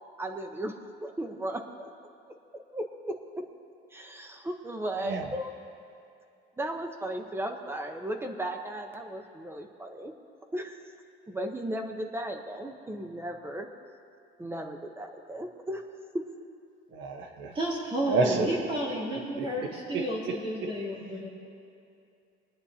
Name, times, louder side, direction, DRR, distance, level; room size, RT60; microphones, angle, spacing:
voice 1, 0.2-0.7 1.0-1.9 2.7-3.5 3.9-5.6 6.6-10.1 10.5-10.8 11.3-13.7 14.4-15.8 16.1-16.3, right 1 dB, 10° right, 4 dB, 0.9 m, -35 dB
voice 2, 16.9-17.6 18.1-18.5 19.4-19.5 19.9-20.0 20.6-20.7, right 3 dB, 70° right, 3 dB, 1.2 m, -29 dB
voice 3, 17.5-21.4, equal, 30° right, -5 dB, 2.9 m, -32 dB
25.0 x 9.6 x 2.8 m, 2.6 s
cardioid pair, 135°, 19 cm